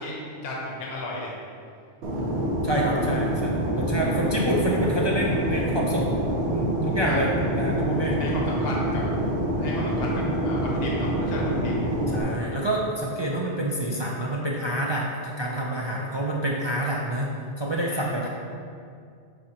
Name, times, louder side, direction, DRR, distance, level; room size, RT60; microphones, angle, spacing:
voice 1, 0.0-1.3 6.9-7.2 8.2-9.1 9.6-11.7 17.9-18.1, left 1 dB, 60° left, -3 dB, 1.1 m, -34 dB
Fixed-wing aircraft airplane, 2.0-12.2, right 1 dB, 65° right, 1.1 m, -26 dB
voice 2, 2.6-6.1 6.5-8.2 12.1-18.3, right 1 dB, 40° right, -3 dB, 0.4 m, -27 dB
7.3 x 4.7 x 2.9 m, 2.3 s
omnidirectional pair, 1.2 m